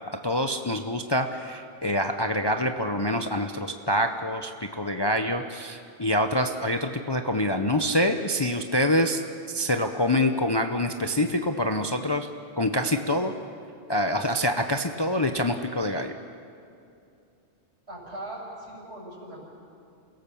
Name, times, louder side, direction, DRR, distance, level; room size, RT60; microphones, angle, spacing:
voice 1, 0.2-9.2 9.5-12.3 12.6-13.3 13.9-16.1, left 1 dB, 25° left, 5 dB, 0.7 m, -26 dB
voice 2, 17.9-19.4, right 1 dB, 60° right, -3 dB, 6.4 m, -39 dB
28.0 x 17.0 x 7.0 m, 2.5 s
omnidirectional pair, 1.2 m